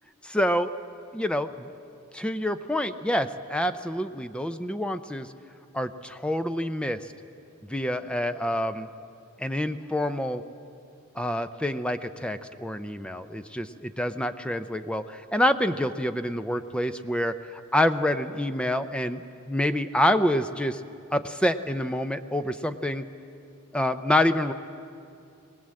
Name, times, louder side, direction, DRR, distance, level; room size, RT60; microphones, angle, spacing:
voice 1, 0.2-0.7 1.1-1.7 2.1-5.3 5.7-7.0 7.7-8.9 9.4-10.4 11.2-20.8 21.1-23.0 23.7-24.5, left 1 dB, 5° left, 10 dB, 0.5 m, -27 dB
22.0 x 19.0 x 7.6 m, 2.5 s
head